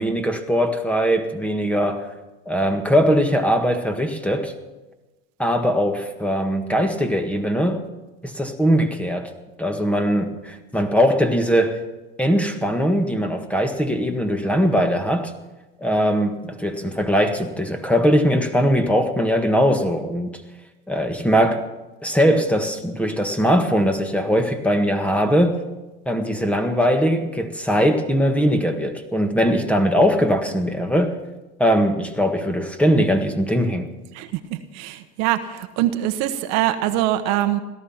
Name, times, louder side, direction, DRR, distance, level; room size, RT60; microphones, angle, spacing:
voice 1, 0.0-2.1 2.5-4.5 5.4-7.9 8.2-9.3 9.6-11.8 12.2-15.3 15.8-20.4 20.9-21.6 22.0-25.6 26.1-31.2 31.6-33.9, equal, 5° left, 6 dB, 1.7 m, -20 dB
voice 2, 34.1-37.6, right 13 dB, 60° right, 9 dB, 1.2 m, -23 dB
17.5 x 13.0 x 5.8 m, 1.1 s
supercardioid pair, 100°, 30 cm